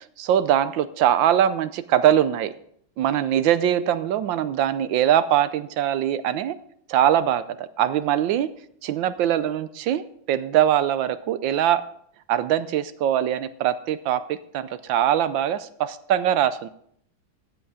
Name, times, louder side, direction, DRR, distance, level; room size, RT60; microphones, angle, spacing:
voice 1, 0.2-2.5 3.0-6.5 6.9-8.5 8.8-11.8 12.3-16.7, right 10 dB, 75° right, 14 dB, 1.3 m, -22 dB
14.5 x 8.0 x 4.8 m, 0.66 s
omnidirectional pair, 2.2 m